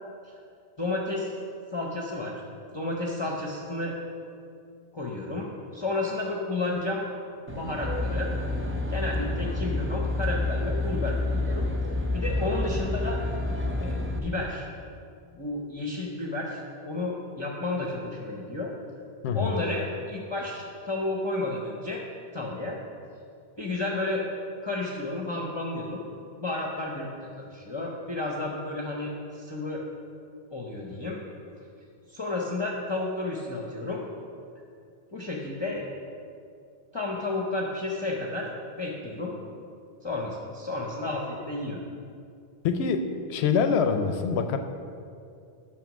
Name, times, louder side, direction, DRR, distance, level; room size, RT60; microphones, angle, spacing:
voice 1, 0.8-1.3 1.7-2.3 2.7-3.9 4.9-5.5 5.7-7.0 7.5-8.3 8.9-11.7 12.1-13.2 13.8-14.7 15.4-16.6 16.9-18.7 19.3-22.0 22.3-22.8 23.6-24.2 24.6-26.0 26.4-29.8 30.5-31.2 32.1-34.0 35.1-35.8 36.9-38.5 38.8-39.3 40.0-41.8, left 2 dB, 30° left, -2 dB, 0.8 m, -31 dB
Aircraft, 7.5-14.2, left 2 dB, 15° right, 0.5 m, -29 dB
voice 2, 42.6-44.6, left 6 dB, 90° left, 7 dB, 0.9 m, -25 dB
9.2 x 6.0 x 6.2 m, 2.4 s
omnidirectional pair, 1.1 m